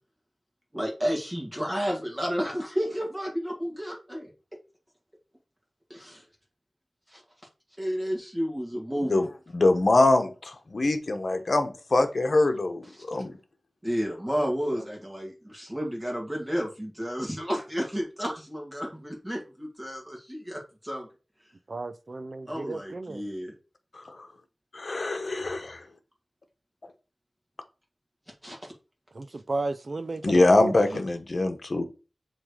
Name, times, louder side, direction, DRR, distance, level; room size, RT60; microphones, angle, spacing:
voice 1, 0.7-4.3 5.9-6.2 7.1-7.2 7.8-9.2 12.9-13.0 13.8-21.1 22.5-23.5 28.4-28.6, equal, 15° right, 2.1 m, -31 dB
voice 2, 9.5-13.3 24.2-24.3 24.7-25.8 30.2-31.8, left 2 dB, 60° left, 1.1 m, -23 dB
voice 3, 21.7-23.2 29.1-31.0, right 3 dB, 55° right, 0.6 m, -34 dB
7.2 x 3.3 x 4.9 m
wide cardioid pair, 85°, 0 cm